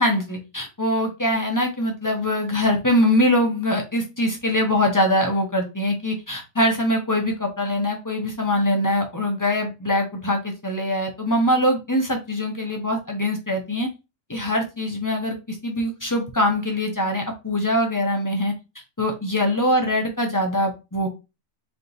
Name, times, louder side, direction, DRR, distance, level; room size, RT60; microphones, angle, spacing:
voice 1, 0.0-13.9 14.3-18.5 19.0-21.1, left 1 dB, 20° left, 2 dB, 0.5 m, -23 dB
3.4 x 2.9 x 3.8 m, 0.26 s
omnidirectional pair, 1.6 m